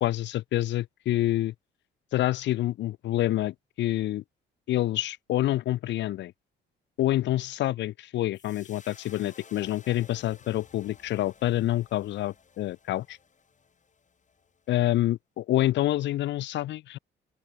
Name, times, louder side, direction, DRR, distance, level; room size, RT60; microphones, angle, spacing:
voice 1, 0.0-1.5 2.1-4.2 4.7-6.3 7.0-13.2 14.7-17.0, left 14 dB, 65° left, 0.4 m, -27 dB
sound 1, 8.3-14.7, left 5 dB, 40° left, 3.4 m, -55 dB
open air
cardioid pair, 90°, 20 cm